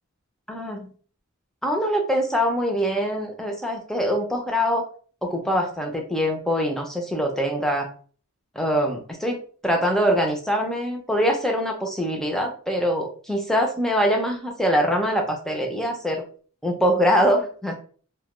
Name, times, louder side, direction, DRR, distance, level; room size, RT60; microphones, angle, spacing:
voice 1, 0.5-0.9 1.6-4.8 5.2-7.9 8.6-16.2 16.6-17.7, equal, ahead, 2 dB, 0.4 m, -23 dB
2.1 x 2.1 x 3.0 m, 0.43 s
head